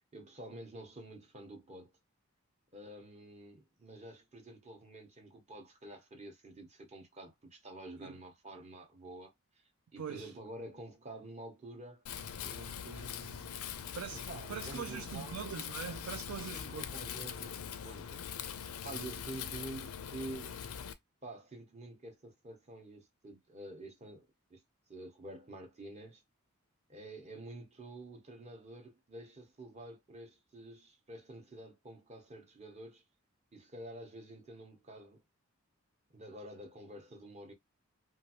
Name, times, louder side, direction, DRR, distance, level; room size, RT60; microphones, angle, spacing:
voice 1, 0.1-1.9 2.7-9.3 9.9-12.0 12.4-13.6 14.3-15.4 16.5-17.6 17.8-20.5 21.2-24.6 24.9-26.2 26.9-33.0 33.5-35.2 36.1-37.5, right 1 dB, 30° right, 0.8 m, -49 dB
voice 2, 10.0-10.3 13.9-16.9, right 7 dB, 80° right, 0.4 m, -42 dB
Wind, 12.1-20.9, left 8 dB, 85° left, 0.4 m, -42 dB
3.1 x 2.3 x 2.8 m
head